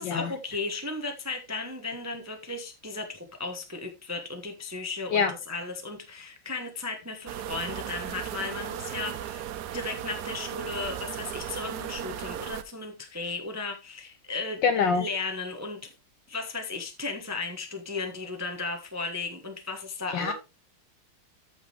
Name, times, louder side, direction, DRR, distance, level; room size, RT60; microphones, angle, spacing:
voice 1, 0.0-14.6 14.9-15.9 16.3-20.3, left 3 dB, 15° right, 0.6 m, -35 dB
sound 1, 7.3-12.6, right 10 dB, 70° right, 1.0 m, -36 dB
voice 2, 14.6-15.0 20.1-20.3, left 5 dB, 70° left, 1.3 m, -24 dB
13.5 x 4.9 x 3.3 m
omnidirectional pair, 2.3 m